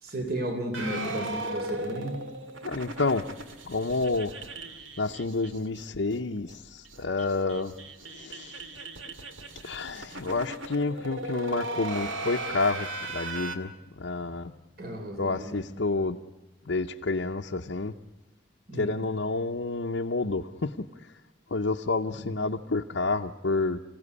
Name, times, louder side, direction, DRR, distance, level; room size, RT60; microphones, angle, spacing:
voice 1, 0.0-2.2 14.8-15.7 18.7-19.0 22.1-22.3, right 1 dB, 50° right, 4 dB, 3.5 m, -34 dB
sound 1, 0.7-5.8 6.1-6.2 6.5-6.6 6.8-13.5, right 2 dB, 85° right, 2.2 m, -37 dB
voice 2, 2.6-3.3 3.6-4.3 5.0-7.7 8.0-8.7 9.6-14.5 15.2-16.2 16.6-17.9 18.7-21.1 21.5-23.8, left 3 dB, 75° left, 0 dB, 0.8 m, -29 dB
26.5 x 17.0 x 9.7 m, 1.1 s
head